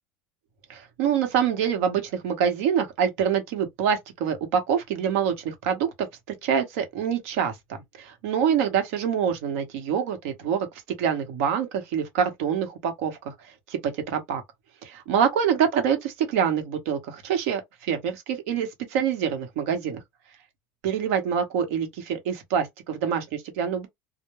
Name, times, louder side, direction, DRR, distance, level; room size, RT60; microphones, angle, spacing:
voice 1, 0.7-6.1 6.4-10.7 11.0-13.3 13.7-13.8 14.1-14.4 14.8-17.6 17.9-20.0 20.8-23.9, right 8 dB, 75° right, 0.9 m, -25 dB
2.2 x 2.0 x 3.0 m
cardioid pair, 170°, 7 cm